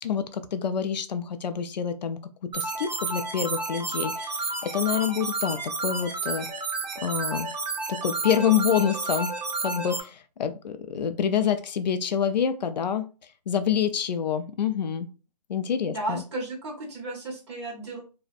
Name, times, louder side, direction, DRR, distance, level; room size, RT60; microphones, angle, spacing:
voice 1, 0.0-6.5 7.0-7.5 7.9-9.3 9.6-13.1 13.5-15.1 15.5-16.2, left 8 dB, 80° left, 10 dB, 0.4 m, -27 dB
sound 1, 2.5-10.0, right 3 dB, 85° right, 0.7 m, -31 dB
voice 2, 15.8-18.0, right 2 dB, 40° right, -3 dB, 1.2 m, -34 dB
2.6 x 2.1 x 2.4 m, 0.34 s
hypercardioid pair, 170°, 21 cm